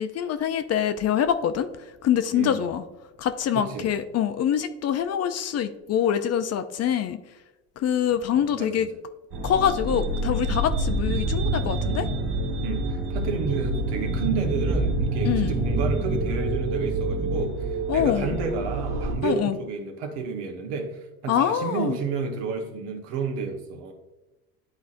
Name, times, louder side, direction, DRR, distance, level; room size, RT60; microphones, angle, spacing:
voice 1, 0.0-2.8 3.2-7.2 7.8-8.9 9.4-12.1 15.2-15.6 17.9-18.4 19.2-19.6 21.3-22.0, left 9 dB, 35° left, 10 dB, 0.5 m, -25 dB
voice 2, 2.3-2.7 3.5-3.9 8.3-8.9 12.6-23.9, right 5 dB, 70° right, 2 dB, 1.3 m, -31 dB
sound 1, 9.3-19.1, right 1 dB, 55° right, 1.7 m, -27 dB
10.5 x 4.2 x 2.5 m, 1.0 s
supercardioid pair, 85°, 44 cm